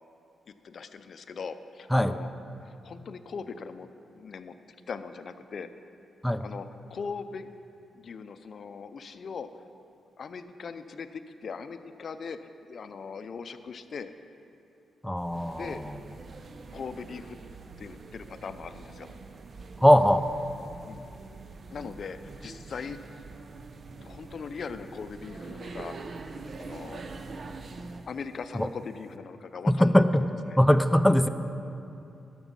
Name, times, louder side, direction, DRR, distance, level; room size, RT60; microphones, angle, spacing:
voice 1, 0.5-2.3 2.6-4.5 4.9-5.7 6.4-7.5 7.9-9.5 10.2-14.1 15.5-15.8 16.7-17.4 17.8-19.1 20.9-21.1 21.7-23.0 24.0-25.9 26.6-27.0 27.8-30.0 30.5-30.6, left 5 dB, 60° left, 11 dB, 0.5 m, -40 dB
voice 2, 15.0-15.9 19.8-20.3 28.6-28.7 29.7-30.3 30.6-31.3, equal, 5° left, 10 dB, 0.5 m, -21 dB
sound 1, 15.2-28.1, right 3 dB, 50° right, 0.6 m, -44 dB
13.0 x 6.0 x 5.4 m, 2.7 s
cardioid pair, 70°, 0 cm